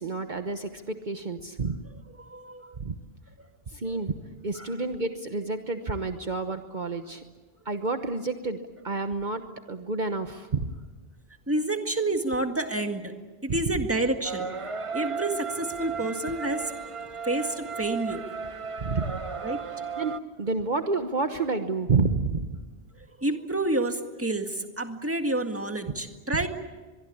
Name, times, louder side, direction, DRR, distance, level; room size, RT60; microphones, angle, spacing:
voice 1, 0.0-1.8 2.8-3.0 3.7-4.1 4.4-7.2 7.6-8.6 8.8-9.4 9.7-10.6 18.8-19.2 20.0-22.5, right 3 dB, 50° right, 7 dB, 1.3 m, -29 dB
voice 2, 2.2-2.8 3.4-3.5 4.6-4.7 11.5-13.1 13.4-14.5 14.9-16.9 17.2-18.3 19.4-19.6 23.0-26.5, right 2 dB, 15° right, 5 dB, 1.8 m, -29 dB
sound 1, 14.2-20.2, right 6 dB, 35° right, 0.9 m, -35 dB
23.5 x 23.0 x 8.8 m, 1.3 s
omnidirectional pair, 1.0 m